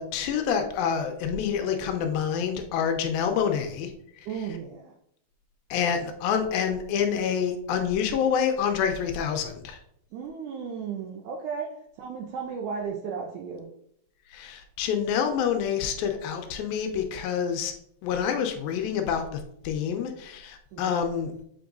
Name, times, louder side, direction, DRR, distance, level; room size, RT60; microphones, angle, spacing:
voice 1, 0.0-3.9 4.2-4.3 5.7-9.8 14.3-17.7 18.0-21.3, left 7 dB, 85° left, 5 dB, 2.4 m, -27 dB
voice 2, 4.3-4.9 10.1-11.7 12.0-13.7 20.7-20.9, right 6 dB, 80° right, 1 dB, 1.8 m, -34 dB
6.9 x 5.3 x 2.6 m, 0.72 s
omnidirectional pair, 4.3 m